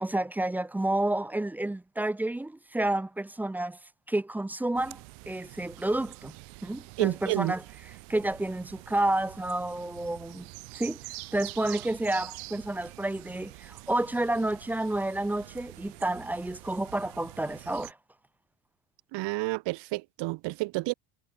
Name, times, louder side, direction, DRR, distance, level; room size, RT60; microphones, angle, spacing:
voice 1, 0.0-3.8 4.1-6.3 6.6-7.6 8.1-10.5 10.7-11.0 11.3-18.0, right 1 dB, 5° right, 0.4 m, -30 dB
sound 1, 4.7-17.9, right 32 dB, 80° right, 6.7 m, -46 dB
voice 2, 7.0-7.5 19.1-20.9, right 22 dB, 60° right, 1.0 m, -30 dB
cardioid pair, 150°, 48 cm